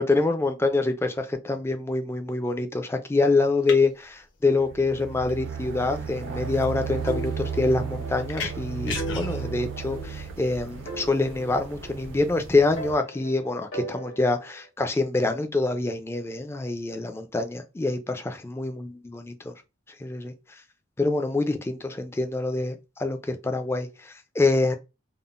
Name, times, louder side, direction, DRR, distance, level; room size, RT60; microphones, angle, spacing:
voice 1, 0.0-19.5 20.0-20.3 21.0-24.7, left 3 dB, 15° left, 0.3 m, -26 dB
sound 1, 3.1-11.6, left 4 dB, 60° left, 0.7 m, -39 dB
sound 2, 4.6-12.9, right 7 dB, 70° right, 0.5 m, -35 dB
sound 3, 7.1-8.2 8.5-8.6 9.0-10.5 10.9-12.3 12.8-14.6, right 1 dB, 80° left, 1.4 m, -39 dB
3.5 x 2.0 x 2.4 m
head